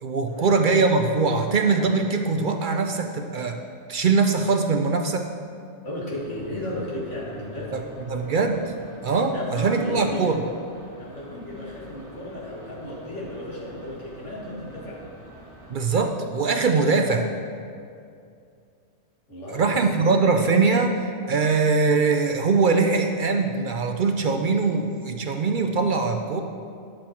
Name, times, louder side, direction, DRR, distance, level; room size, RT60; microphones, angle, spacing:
voice 1, 0.0-3.6 3.9-5.3 7.7-7.8 8.1-8.6 9.0-10.4 15.7-17.3 19.5-26.4, right 4 dB, 55° right, 5 dB, 0.6 m, -22 dB
voice 2, 5.8-7.8 9.3-10.3 11.0-15.0 19.3-19.7, left 1 dB, 75° left, -6 dB, 2.5 m, -34 dB
sound 1, 6.1-15.9, right 1 dB, 20° left, 1.7 m, -46 dB
10.0 x 7.5 x 4.4 m, 2.4 s
omnidirectional pair, 1.2 m